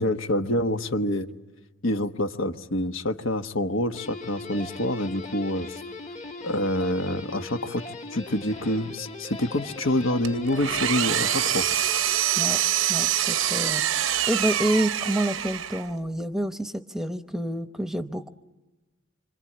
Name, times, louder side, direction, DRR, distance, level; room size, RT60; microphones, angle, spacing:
voice 1, 0.0-1.3 1.8-5.8 6.4-7.8 8.1-11.7, left 1 dB, 80° left, 7 dB, 1.3 m, -27 dB
Guitar, 3.9-13.3, left 3 dB, 35° left, 1.4 m, -40 dB
Engine, 10.2-16.0, right 11 dB, 80° right, 0.8 m, -25 dB
voice 2, 12.9-13.8 14.3-18.3, right 1 dB, ahead, 8 dB, 0.8 m, -28 dB
26.5 x 26.0 x 8.6 m, 1.1 s
head